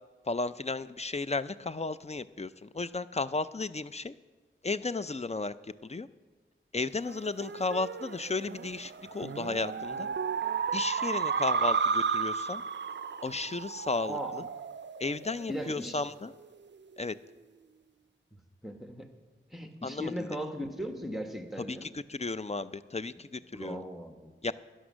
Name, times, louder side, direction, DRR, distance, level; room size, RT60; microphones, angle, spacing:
voice 1, 0.3-4.1 4.6-6.1 6.7-10.1 10.7-12.6 13.2-14.5 15.0-16.3 17.0-17.2 19.8-20.3 21.6-23.8 24.4-24.5, left 3 dB, 30° left, 14 dB, 0.5 m, -34 dB
sound 1, 7.1-15.9, right 5 dB, 60° right, 0.4 m, -33 dB
voice 2, 15.5-16.0 18.6-19.1 19.5-21.9 23.5-24.3, equal, ahead, 5 dB, 1.5 m, -37 dB
12.5 x 10.5 x 6.3 m, 1.4 s
wide cardioid pair, 45°, 21 cm